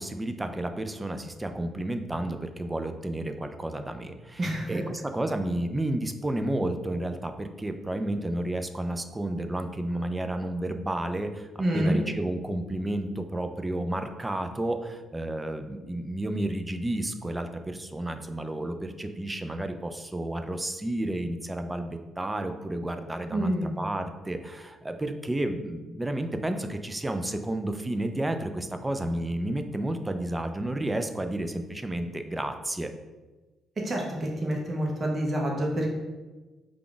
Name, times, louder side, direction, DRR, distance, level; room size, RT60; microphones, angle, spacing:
voice 1, 0.0-11.5 11.7-32.9, right 1 dB, 15° right, 7 dB, 0.4 m, -31 dB
voice 2, 4.4-4.8 11.6-12.0 23.3-23.7 33.8-35.9, right 1 dB, 35° right, -1 dB, 0.8 m, -27 dB
4.8 x 2.4 x 3.8 m, 1.2 s
cardioid pair, 90°, 0 cm